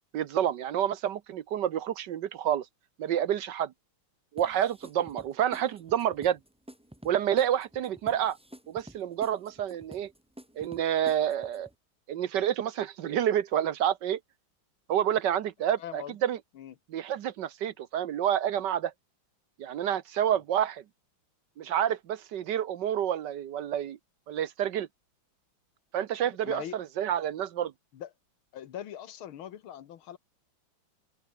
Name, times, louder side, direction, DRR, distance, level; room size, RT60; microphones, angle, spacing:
voice 1, 0.1-2.6 3.0-3.7 4.3-6.4 7.0-8.4 8.7-10.1 10.6-11.7 12.1-14.2 14.9-16.4 16.9-18.9 19.6-20.8 21.6-24.0 24.3-24.9 25.9-27.7, right 10 dB, 65° right, 1.4 m, -29 dB
sound 1, 4.4-11.7, equal, 5° right, 1.3 m, -50 dB
voice 2, 15.8-16.2 16.6-16.7 26.5-26.8 27.9-28.1 28.5-30.2, left 10 dB, 90° left, 2.1 m, -41 dB
open air
omnidirectional pair, 2.2 m